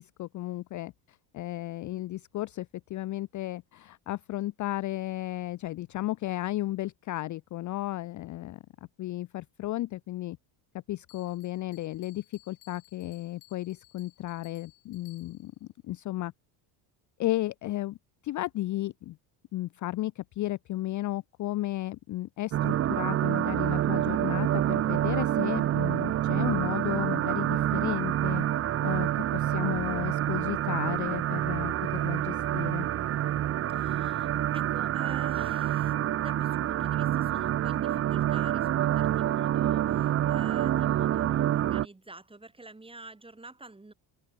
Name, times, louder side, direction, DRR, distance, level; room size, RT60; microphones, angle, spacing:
voice 1, 0.0-8.6 9.0-10.4 10.9-16.3 17.2-18.0 18.2-19.2 19.5-28.4 28.8-32.9, left 16 dB, 40° left, 0.5 m, -34 dB
Bell, 11.1-15.6, left 36 dB, 90° left, 6.4 m, -59 dB
sound 1, 22.5-41.9, right 12 dB, 30° right, 0.5 m, -27 dB
voice 2, 33.7-35.9 36.2-43.9, right 2 dB, 10° right, 3.8 m, -49 dB
supercardioid pair, 105°, 49 cm